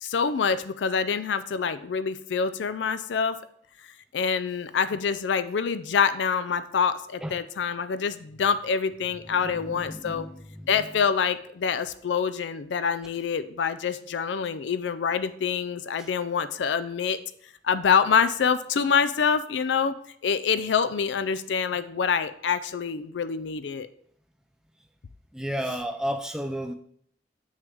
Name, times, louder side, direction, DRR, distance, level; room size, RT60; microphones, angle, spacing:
voice 1, 0.0-3.4 4.1-10.3 10.7-17.2 17.6-19.9 20.2-23.9, left 6 dB, 85° left, 13 dB, 0.4 m, -26 dB
voice 2, 9.4-10.9 25.3-26.7, equal, 5° right, 5 dB, 0.4 m, -33 dB
7.5 x 6.3 x 3.6 m, 0.65 s
head